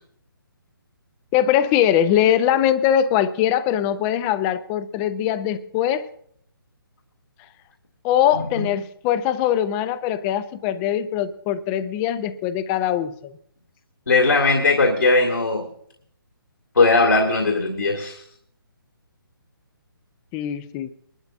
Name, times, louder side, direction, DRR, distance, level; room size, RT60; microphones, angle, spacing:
voice 1, 1.3-6.1 8.0-13.3 20.3-20.9, left 10 dB, 15° left, 14 dB, 0.4 m, -21 dB
voice 2, 14.1-15.7 16.8-18.2, left 3 dB, 65° left, 2 dB, 2.1 m, -18 dB
22.0 x 12.0 x 2.5 m, 0.63 s
figure-of-eight pair, 140°, 12 cm